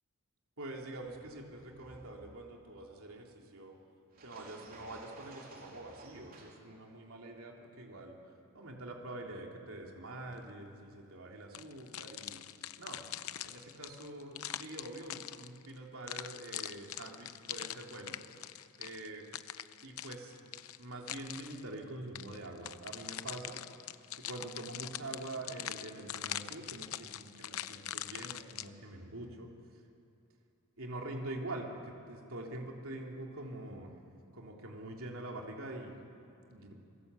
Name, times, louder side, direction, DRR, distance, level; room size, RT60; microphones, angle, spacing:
voice 1, 0.6-3.7 4.2-8.2 8.5-12.4 12.8-13.1 13.4-18.2 18.8-19.3 19.8-23.6 24.1-29.5 30.8-34.0 34.3-36.0 36.5-36.7, right 2 dB, 70° right, 0 dB, 3.5 m, -45 dB
sound 1, 1.0-2.8 4.1-6.6, right 2 dB, 45° right, 3.6 m, -55 dB
sound 2, 11.5-15.7 16.1-21.7 22.1-28.7, left 11 dB, 80° left, 0.7 m, -43 dB
28.0 x 21.5 x 8.4 m, 2.6 s
head